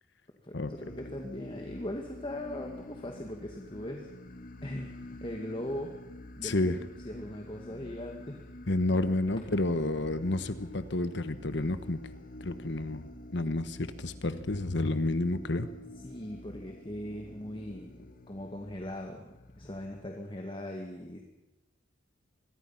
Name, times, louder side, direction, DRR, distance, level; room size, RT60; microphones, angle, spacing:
voice 1, 0.4-4.1 4.6-5.9 6.4-8.5 16.0-21.2, left 1 dB, 25° left, 2 dB, 2.1 m, -40 dB
sound 1, 0.7-20.4, left 1 dB, 45° left, 1.6 m, -48 dB
voice 2, 6.4-6.8 8.7-12.0 12.4-13.0 13.3-15.7, left 2 dB, 60° left, 12 dB, 1.1 m, -30 dB
26.5 x 22.0 x 5.9 m, 0.98 s
head